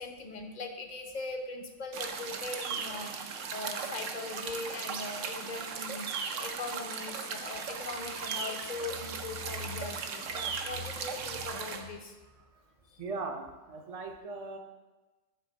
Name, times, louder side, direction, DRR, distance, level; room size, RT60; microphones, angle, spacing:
voice 1, 0.0-6.1 6.4-12.2 12.9-13.0, left 3 dB, 45° left, 4 dB, 0.7 m, -40 dB
sound 1, 1.9-11.8, right 6 dB, 75° right, 1.0 m, -37 dB
voice 2, 13.0-14.6, right 3 dB, 35° right, 4 dB, 0.6 m, -39 dB
7.7 x 3.5 x 6.2 m, 1.2 s
omnidirectional pair, 1.3 m